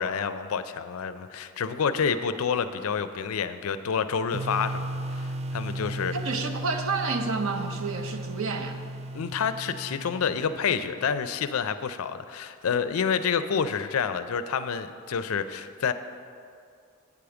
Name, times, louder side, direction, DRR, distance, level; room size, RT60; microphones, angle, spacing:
voice 1, 0.0-4.9 5.1-6.1 9.1-15.9, left 6 dB, 70° left, 11 dB, 0.4 m, -28 dB
sound 1, 4.3-11.1, right 1 dB, 30° right, 0.4 m, -35 dB
voice 2, 6.1-8.8, right 4 dB, 65° right, 7 dB, 0.6 m, -30 dB
8.4 x 5.0 x 6.9 m, 2.3 s
head